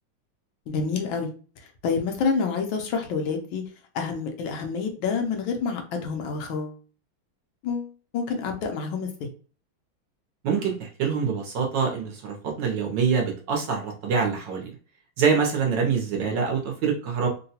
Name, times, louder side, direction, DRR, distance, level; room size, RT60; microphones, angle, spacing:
voice 1, 0.7-1.3 1.6-3.6 3.9-6.8 7.6-9.3, left 5 dB, 75° left, 3 dB, 1.4 m, -28 dB
voice 2, 10.4-14.7 15.2-17.3, right 6 dB, 70° right, 1 dB, 1.2 m, -25 dB
3.8 x 2.2 x 2.7 m, 0.38 s
omnidirectional pair, 2.3 m